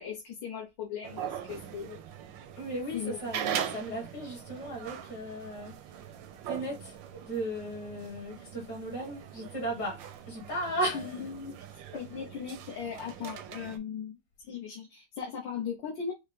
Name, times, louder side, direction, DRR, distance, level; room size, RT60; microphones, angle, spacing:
voice 1, 0.0-2.0 2.9-3.2 3.5-3.6 10.9-11.6 11.9-16.1, left 7 dB, 75° left, 1.6 m, -38 dB
sound 1, 1.0-13.8, right 9 dB, 85° right, 1.3 m, -41 dB
voice 2, 2.6-5.7 6.5-10.0 10.3-11.2, right 1 dB, 60° left, 2.2 m, -36 dB
5.5 x 2.1 x 3.4 m
omnidirectional pair, 2.0 m